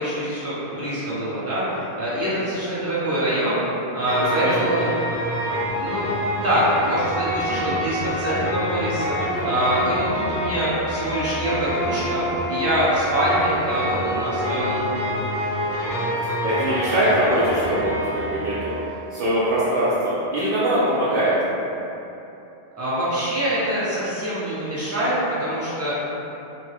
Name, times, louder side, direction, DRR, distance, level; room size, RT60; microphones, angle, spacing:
voice 1, 0.0-3.6 3.9-4.9 5.7-15.0 22.7-25.9, right 1 dB, 15° right, -11 dB, 0.9 m, -24 dB
sound 1, 4.1-18.8, equal, 85° left, 1.3 m, -27 dB
voice 2, 4.4-4.8 9.4-9.5 15.7-18.7 19.1-21.4, right 1 dB, 60° right, -9 dB, 0.6 m, -23 dB
3.1 x 2.1 x 3.4 m, 3.0 s
omnidirectional pair, 1.1 m